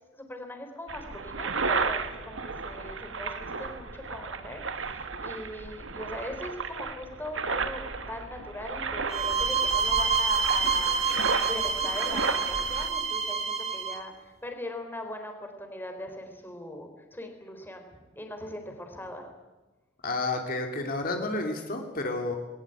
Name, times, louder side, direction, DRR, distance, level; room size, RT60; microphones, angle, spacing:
voice 1, 0.1-19.3, left 1 dB, 10° left, 4 dB, 3.7 m, -40 dB
sound 1, 0.9-12.9, right 4 dB, 80° right, 1.7 m, -34 dB
sound 2, 9.1-14.0, right 5 dB, 35° right, 2.5 m, -27 dB
voice 2, 20.0-22.4, left 2 dB, 50° left, 3 dB, 2.8 m, -30 dB
20.5 x 19.5 x 9.0 m, 1.2 s
head